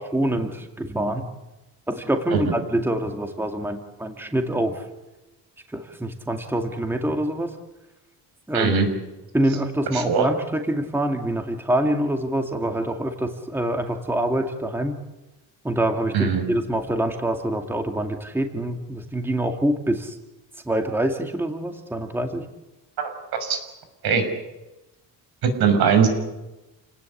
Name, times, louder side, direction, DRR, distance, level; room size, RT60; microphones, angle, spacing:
voice 1, 0.1-1.2 1.9-4.8 5.7-7.5 8.5-8.8 9.3-15.0 15.6-20.2 20.7-22.5, right 1 dB, 5° right, 4 dB, 2.1 m, -25 dB
voice 2, 8.5-8.9 9.9-10.3 16.1-16.4 23.0-23.1 23.4-23.6 24.0-24.2 25.4-26.1, right 6 dB, 75° right, 7 dB, 6.3 m, -20 dB
29.5 x 18.5 x 8.6 m, 1.0 s
cardioid pair, 150°, 38 cm